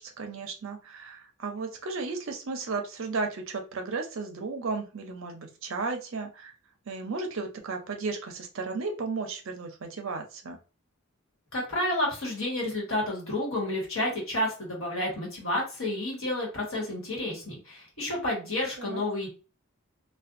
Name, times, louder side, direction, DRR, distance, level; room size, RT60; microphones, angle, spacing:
voice 1, 0.0-6.5 6.9-10.6 18.8-19.0, right 4 dB, 60° right, 5 dB, 0.5 m, -34 dB
voice 2, 11.5-19.3, left 1 dB, 65° left, -3 dB, 1.3 m, -30 dB
2.5 x 2.2 x 2.5 m, 0.33 s
head